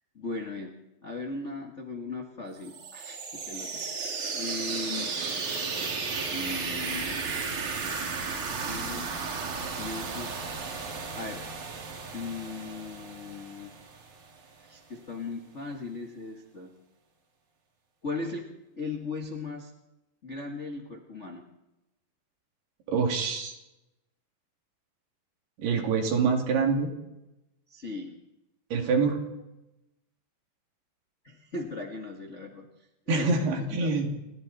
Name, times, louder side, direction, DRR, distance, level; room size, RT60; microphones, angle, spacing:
voice 1, 0.1-0.8 1.0-3.8 4.3-5.1 6.3-7.2 8.3-9.1 9.6-10.3 11.1-11.4 12.1-13.7 14.6-16.7 18.0-18.5 18.7-19.7 20.2-21.5 27.7-28.1 31.2-32.6 33.1-33.9, left 3 dB, 65° left, 0 dB, 0.7 m, -38 dB
sound 1, 2.6-14.3, right 4 dB, 55° right, 3.9 m, -34 dB
voice 2, 22.9-23.6 25.6-26.9 28.7-29.2 33.1-34.1, right 4 dB, 80° right, 2 dB, 4.7 m, -25 dB
29.0 x 22.5 x 4.2 m, 0.95 s
omnidirectional pair, 4.5 m